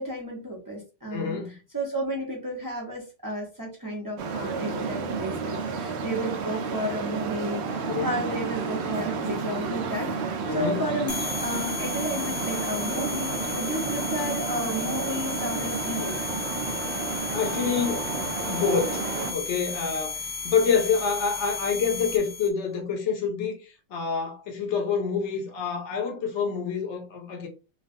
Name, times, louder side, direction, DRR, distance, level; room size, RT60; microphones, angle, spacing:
voice 1, 0.0-1.4 1.7-16.2, equal, 20° right, 0.7 m, -32 dB
voice 2, 1.1-1.6 7.8-8.2 10.5-10.8 17.0-18.1 18.5-27.5, left 6 dB, 70° left, 1.0 m, -27 dB
Traffic noise roadway noise, 4.2-19.3, right 5 dB, 65° right, 0.8 m, -31 dB
sound 1, 11.1-22.5, left 5 dB, 30° left, 0.8 m, -34 dB
3.1 x 2.4 x 2.5 m
omnidirectional pair, 1.3 m